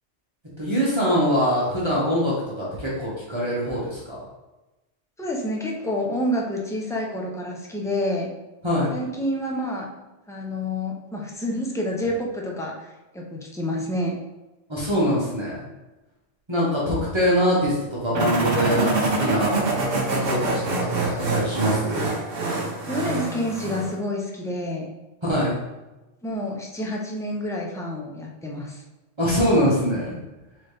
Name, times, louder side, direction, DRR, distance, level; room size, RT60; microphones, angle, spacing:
voice 1, 0.6-4.2 8.6-8.9 14.7-15.6 16.5-19.6 20.3-22.1 25.2-25.6 29.2-30.2, equal, 25° right, -8 dB, 1.2 m, -23 dB
voice 2, 5.2-8.3 8.9-9.9 10.3-12.9 13.1-14.2 22.9-24.9 26.2-28.8, left 1 dB, 5° left, -1 dB, 0.4 m, -28 dB
sound 1, 18.1-24.0, right 3 dB, 55° right, 0.9 m, -25 dB
4.0 x 3.8 x 3.4 m, 1.1 s
omnidirectional pair, 1.2 m